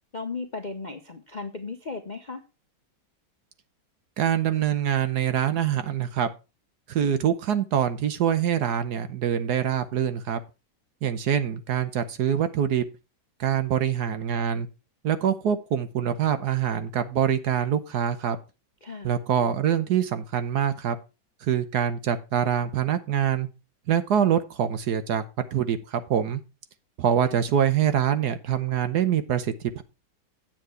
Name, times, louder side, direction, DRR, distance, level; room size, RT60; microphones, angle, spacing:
voice 1, 0.1-2.4 18.8-19.1 27.3-27.4, left 4 dB, 40° left, 0.6 m, -36 dB
voice 2, 4.2-6.3 6.9-10.4 11.0-12.8 13.4-14.7 15.0-18.4 19.0-21.0 21.5-23.5 23.9-25.2 25.5-26.4 27.0-29.8, right 9 dB, 65° right, 1.3 m, -24 dB
9.1 x 7.5 x 4.6 m
omnidirectional pair, 2.1 m